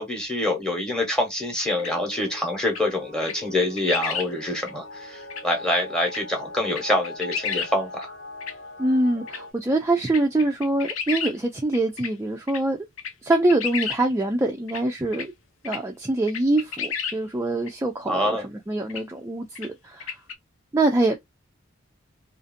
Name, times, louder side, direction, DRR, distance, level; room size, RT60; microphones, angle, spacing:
voice 1, 0.0-8.1 18.1-18.5, left 1 dB, 5° left, 0.9 m, -26 dB
sound 1, 1.7-9.5, left 2 dB, 65° left, 1.1 m, -41 dB
sound 2, 1.8-1.9 2.7-2.8 3.2-3.3 3.6-4.3 4.7-4.8 5.3-5.4 6.1-6.2 6.7-7.7 8.0-8.1 8.4-8.5 9.3-9.4 10.1-11.3 11.7-12.1 12.5-12.6 13.0-14.0 14.7-14.8 15.1-15.3 15.6-15.8 16.3-17.2 17.7-17.8 18.9-19.0 19.5-19.7 20.0-20.3, left 7 dB, 85° left, 0.6 m, -31 dB
voice 2, 8.8-12.8 13.2-15.3 15.6-20.1 20.7-21.2, right 2 dB, 15° right, 0.3 m, -24 dB
2.6 x 2.5 x 2.5 m
head